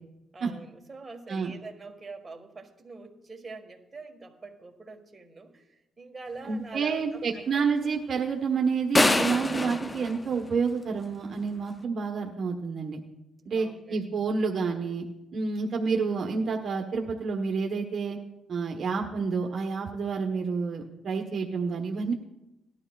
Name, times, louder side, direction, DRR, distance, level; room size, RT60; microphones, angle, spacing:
voice 1, 0.3-7.6 13.4-14.1, right 3 dB, 25° right, 3 dB, 1.5 m, -44 dB
voice 2, 6.4-13.0 13.5-15.0 15.3-18.2 18.5-22.1, right 5 dB, 55° right, 1 dB, 1.1 m, -29 dB
sound 1, 9.0-11.1, left 2 dB, 20° left, 0.4 m, -26 dB
18.5 x 11.5 x 2.4 m, 0.93 s
cardioid pair, 90°, 0 cm